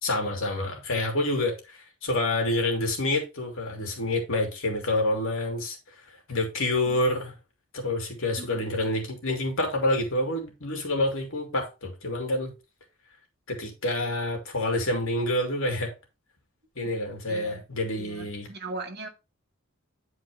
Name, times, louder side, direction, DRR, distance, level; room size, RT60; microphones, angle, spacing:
voice 1, 0.0-5.8 6.3-7.4 7.7-12.5 13.5-15.9 16.8-18.5, left 1 dB, 65° left, 2.8 m, -28 dB
voice 2, 8.4-8.9 16.8-16.9 17.3-17.6 18.0-19.1, right 2 dB, 50° right, 1.6 m, -39 dB
10.5 x 4.7 x 3.5 m
head